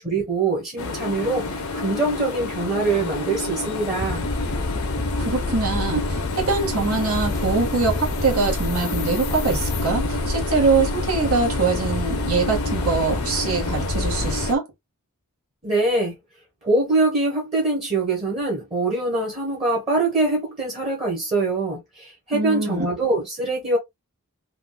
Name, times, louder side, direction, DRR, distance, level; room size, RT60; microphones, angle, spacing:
voice 1, 0.0-4.2 15.6-16.1 16.6-23.8, right 2 dB, 30° right, 1.2 m, -23 dB
sound 1, 0.8-14.5, left 3 dB, 75° left, 0.7 m, -30 dB
sound 2, 3.9-14.6, left 2 dB, 25° left, 0.3 m, -28 dB
voice 2, 5.2-14.6 22.3-22.9, right 4 dB, 75° right, 1.5 m, -23 dB
3.6 x 2.4 x 2.2 m
head